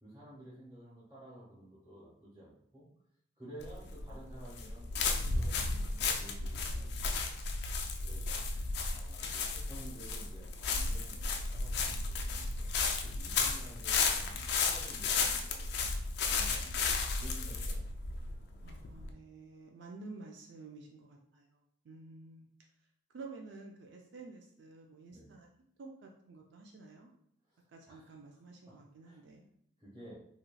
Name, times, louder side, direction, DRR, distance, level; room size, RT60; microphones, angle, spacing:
voice 1, 0.0-2.9 3.4-7.2 8.0-12.5 13.0-15.9 16.2-17.8 25.1-25.3 27.5-27.6 27.9-28.1 28.7-28.8 29.0-29.2 29.8-30.2, right 1 dB, 20° right, -9 dB, 1.2 m, -53 dB
sound 1, 3.6-19.1, left 4 dB, 55° left, 0.3 m, -34 dB
voice 2, 18.6-22.5 23.1-25.5 25.8-27.1 27.7-29.4, right 3 dB, 65° right, 1 dB, 0.3 m, -51 dB
2.9 x 2.8 x 2.2 m, 0.70 s
head